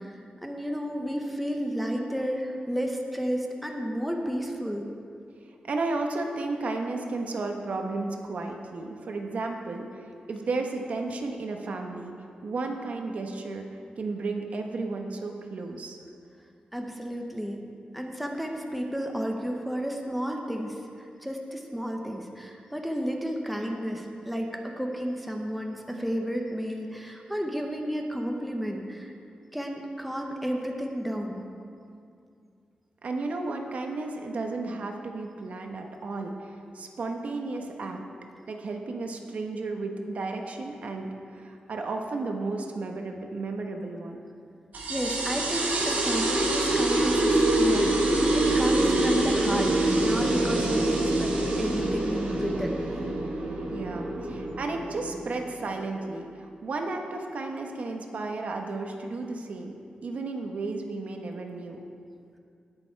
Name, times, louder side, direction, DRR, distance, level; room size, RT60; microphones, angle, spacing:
voice 1, 0.0-4.8 16.7-17.6 17.9-29.1 29.5-31.4 44.9-48.0 48.3-52.8, equal, ahead, 1 dB, 0.8 m, -32 dB
voice 2, 5.6-12.2 12.4-13.6 14.0-16.0 33.0-38.0 38.5-44.2 53.7-61.8, right 3 dB, 60° right, 3 dB, 1.1 m, -33 dB
sound 1, 44.7-55.8, right 2 dB, 85° right, 3.1 m, -25 dB
18.5 x 7.0 x 4.6 m, 2.4 s
wide cardioid pair, 170°, 3 cm